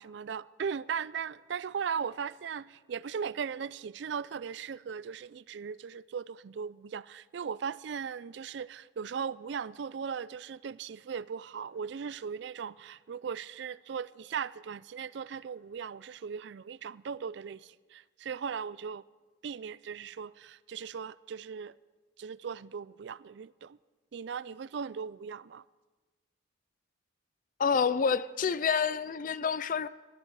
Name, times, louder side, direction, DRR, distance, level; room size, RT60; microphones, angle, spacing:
voice 1, 0.0-19.0 19.4-21.7 22.2-23.8 24.1-25.6, right 6 dB, 60° right, 0.3 m, -38 dB
voice 2, 27.6-29.9, left 6 dB, 45° left, 0.4 m, -28 dB
17.5 x 13.0 x 4.7 m
head